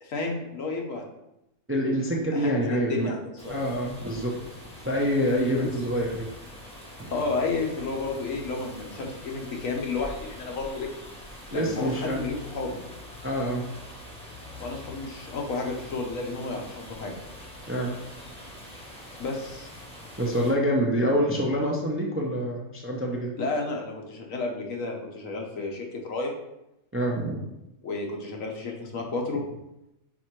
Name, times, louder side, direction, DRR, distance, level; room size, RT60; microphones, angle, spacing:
voice 1, 0.0-1.0 2.3-3.6 5.5-5.8 7.1-10.9 11.5-12.8 14.6-17.1 19.2-19.7 23.4-26.3 27.8-29.4, left 3 dB, 70° left, 1 dB, 1.3 m, -31 dB
voice 2, 1.7-3.1 3.5-4.4 4.8-6.3 7.0-7.1 11.5-12.2 13.2-13.6 17.7-17.9 20.2-23.3 26.9-27.5, equal, 15° right, -1 dB, 0.5 m, -26 dB
sound 1, 3.4-20.5, left 1 dB, 5° left, 1.4 m, -44 dB
4.8 x 4.4 x 4.5 m, 0.90 s
omnidirectional pair, 1.4 m